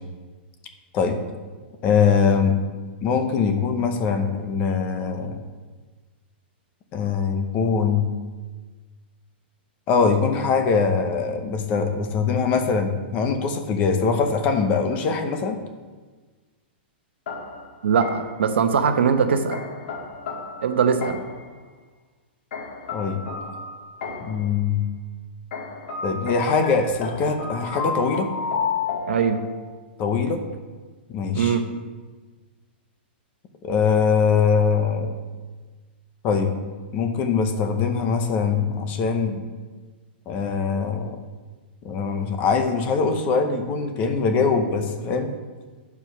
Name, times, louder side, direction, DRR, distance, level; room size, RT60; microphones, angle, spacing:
voice 1, 1.8-2.6 3.0-5.4 6.9-8.1 9.9-15.6 22.9-23.2 24.2-24.9 26.0-28.3 30.0-30.4 31.1-31.6 33.6-35.2 36.2-36.5 36.9-39.4 40.3-41.2 41.8-45.3, left 5 dB, 25° left, 5 dB, 0.8 m, -22 dB
sound 1, 17.3-18.5 19.5-21.5 22.5-24.5 25.5-29.8, left 5 dB, 65° left, 1.7 m, -32 dB
voice 2, 17.8-19.6 20.6-21.2 29.1-29.4 31.3-31.7, right 6 dB, 90° right, 7 dB, 0.9 m, -21 dB
8.6 x 4.7 x 6.0 m, 1.4 s
hypercardioid pair, 165°, 6 cm